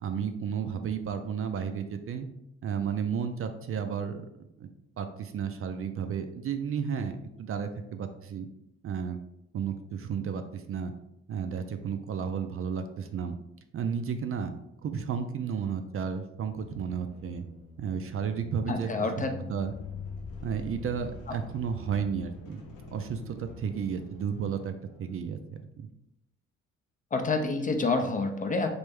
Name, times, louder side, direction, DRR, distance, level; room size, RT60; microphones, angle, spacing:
voice 1, 0.0-2.3 2.6-4.2 4.6-4.7 5.0-8.5 8.8-9.2 9.5-10.9 11.3-13.4 13.7-14.5 14.8-17.4 17.8-18.9 19.5-19.7 20.4-22.6 22.9-24.7 25.0-25.4, right 7 dB, 50° right, 7 dB, 0.4 m, -32 dB
sound 1, 16.4-25.2, left 3 dB, 85° left, 0.8 m, -45 dB
voice 2, 18.7-19.4 27.1-28.7, left 3 dB, 25° left, 4 dB, 0.4 m, -28 dB
3.2 x 2.6 x 3.4 m, 0.82 s
cardioid pair, 90°, 30 cm